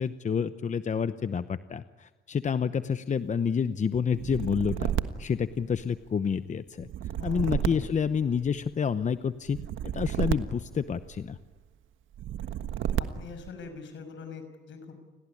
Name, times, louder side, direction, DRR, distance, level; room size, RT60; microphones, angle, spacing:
voice 1, 0.0-4.9 5.2-6.9 7.2-9.6 9.8-11.4, left 6 dB, 40° left, 12 dB, 0.9 m, -29 dB
sound 1, 4.1-6.1 6.8-8.7 9.5-11.4 12.1-13.5, right 10 dB, 75° right, 1.5 m, -32 dB
voice 2, 7.2-7.9 13.1-15.0, left 5 dB, 70° left, 8 dB, 6.2 m, -43 dB
29.5 x 18.5 x 9.9 m, 1.3 s
cardioid pair, 90°, 20 cm